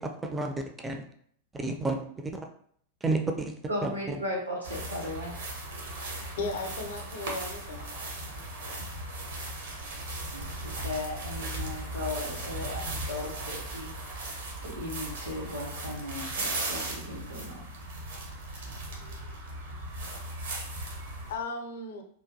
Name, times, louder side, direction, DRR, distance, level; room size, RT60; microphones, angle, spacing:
voice 1, 0.0-0.6 0.8-1.0 1.5-2.5 3.0-3.5 3.8-4.2, right 2 dB, 15° right, 4 dB, 0.4 m, -31 dB
voice 2, 3.7-5.4 10.3-17.6, left 1 dB, 85° right, -3 dB, 0.9 m, -37 dB
sound 1, 4.6-21.3, right 2 dB, 60° right, 0.7 m, -37 dB
voice 3, 6.4-7.9 21.3-22.0, left 3 dB, 60° left, 6 dB, 0.4 m, -35 dB
2.8 x 2.2 x 2.6 m, 0.63 s
figure-of-eight pair, 90°, 0 cm